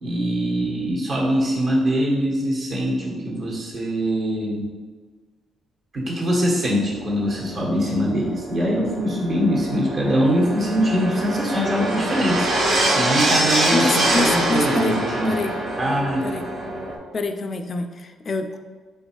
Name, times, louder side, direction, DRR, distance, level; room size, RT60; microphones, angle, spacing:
voice 1, 0.0-4.7 5.9-12.5 12.9-15.3 15.8-16.2, equal, 55° right, -3 dB, 1.3 m, -23 dB
sound 1, 6.8-17.0, right 1 dB, 75° right, 1.0 m, -25 dB
voice 2, 13.7-15.0 15.3-15.6 16.2-16.5 17.1-18.6, left 3 dB, 45° left, 6 dB, 0.3 m, -26 dB
4.4 x 3.6 x 2.9 m, 1.5 s
cardioid pair, 90°, 0 cm